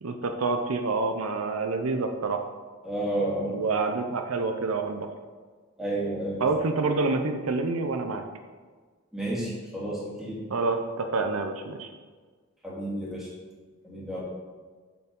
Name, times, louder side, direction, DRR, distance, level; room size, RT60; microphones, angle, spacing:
voice 1, 0.0-2.4 3.5-5.1 6.4-8.2 10.5-11.9, right 3 dB, 75° right, 6 dB, 0.6 m, -27 dB
voice 2, 2.8-3.6 5.8-6.5 9.1-10.5 12.6-13.3 13.8-14.2, right 1 dB, ahead, -7 dB, 2.4 m, -31 dB
7.9 x 6.9 x 3.7 m, 1.5 s
head